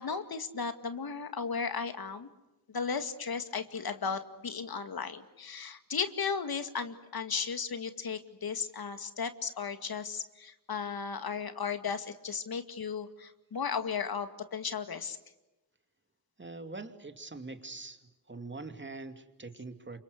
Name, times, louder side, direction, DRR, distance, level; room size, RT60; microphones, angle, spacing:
voice 1, 0.0-2.3 2.7-15.2, left 6 dB, 60° left, 9 dB, 2.3 m, -35 dB
voice 2, 16.4-18.0 18.3-20.0, right 3 dB, 25° right, 7 dB, 2.8 m, -43 dB
29.5 x 26.0 x 6.7 m, 1.0 s
cardioid pair, 80°, 41 cm